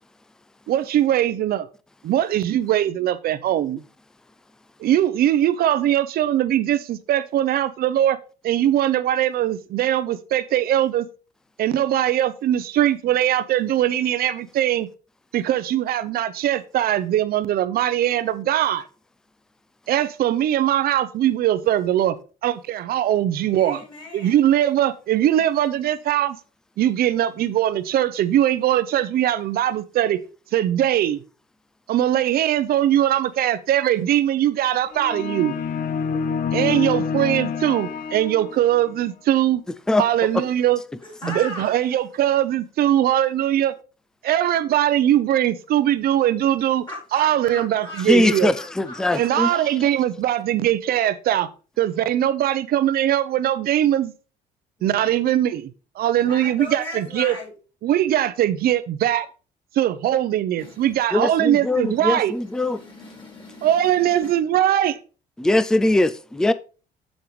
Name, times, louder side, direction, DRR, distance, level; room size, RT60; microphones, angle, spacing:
voice 1, 0.7-1.7 2.0-3.8 4.8-8.2 8.4-11.1 11.6-14.9 15.3-18.8 19.9-22.1 22.4-23.8 24.1-26.4 26.8-30.2 30.5-31.2 31.9-35.5 36.5-39.6 40.0-40.8 41.2-43.7 44.2-46.8 47.1-48.5 49.1-51.5 51.8-54.1 54.8-55.7 56.0-57.3 57.8-59.3 59.7-62.3 63.6-65.0, right 12 dB, 65° right, 0.8 m, -21 dB
voice 2, 23.4-24.4 41.0-41.7 46.9-49.3 54.8-55.1 56.2-57.5 60.6-60.9 62.4-64.3, left 2 dB, 30° left, 4.3 m, -38 dB
sound 1, 34.9-38.9, left 5 dB, 60° left, 0.7 m, -27 dB
voice 3, 48.1-49.5 61.1-62.8 65.4-66.5, left 1 dB, 5° left, 0.4 m, -21 dB
7.5 x 7.2 x 3.2 m
cardioid pair, 110°, 17 cm